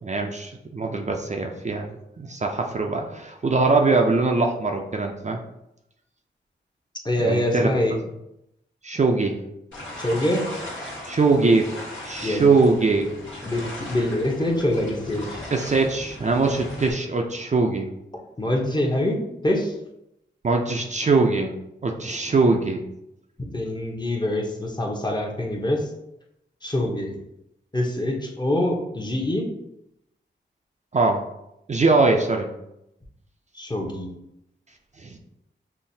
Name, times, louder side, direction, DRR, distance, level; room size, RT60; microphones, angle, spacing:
voice 1, 0.0-5.4 7.2-7.7 8.8-9.4 11.1-11.7 12.0-13.1 15.5-17.9 20.4-21.5 21.8-22.8 30.9-31.2 31.7-32.5 35.0-35.2, right 3 dB, 40° right, 2 dB, 0.4 m, -22 dB
voice 2, 7.0-8.0 10.0-10.5 12.2-12.5 13.4-15.4 18.4-19.7 23.5-25.9 26.6-27.2 27.7-29.5 33.5-34.1, left 1 dB, 20° left, 0 dB, 0.8 m, -25 dB
sound 1, 9.7-16.9, left 1 dB, 80° left, 1.4 m, -37 dB
5.7 x 2.0 x 2.6 m, 0.84 s
cardioid pair, 55°, 19 cm